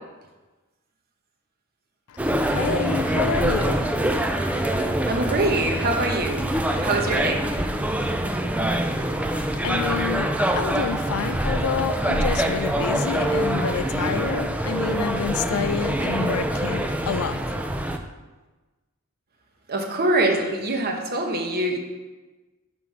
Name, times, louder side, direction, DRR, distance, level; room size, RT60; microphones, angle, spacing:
sound 1, 2.2-18.0, right 1 dB, 5° right, 0.4 m, -25 dB
voice 1, 2.4-3.9 9.2-17.6, left 6 dB, 75° left, 0.4 m, -29 dB
voice 2, 5.1-6.5 6.8-7.4 19.7-21.8, right 2 dB, 45° right, 1.0 m, -24 dB
6.1 x 5.7 x 4.7 m
head